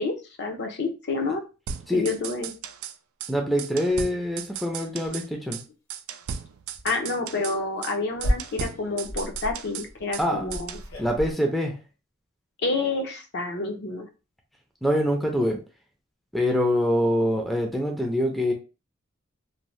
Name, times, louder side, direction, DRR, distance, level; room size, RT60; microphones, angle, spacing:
voice 1, 0.0-1.4 1.9-2.5 6.8-10.8 12.6-14.1, left 3 dB, 55° left, 4 dB, 0.6 m, -29 dB
sound 1, 1.7-2.9 3.2-3.3 3.6-5.3 5.5-5.6 5.9-7.6 7.8-7.9 8.2-10.3 10.5-10.9, right 8 dB, 85° right, 0.3 m, -36 dB
voice 2, 3.3-5.6 10.2-10.5 11.0-11.8 14.8-15.6 16.3-18.5, equal, ahead, 1 dB, 0.4 m, -24 dB
sound 2, 3.9-4.0 4.5-4.6 5.0-5.4 6.2-6.4 6.7-6.9 7.6-11.3, equal, 90° left, 0.8 m, -33 dB
2.7 x 2.1 x 3.1 m, 0.31 s
head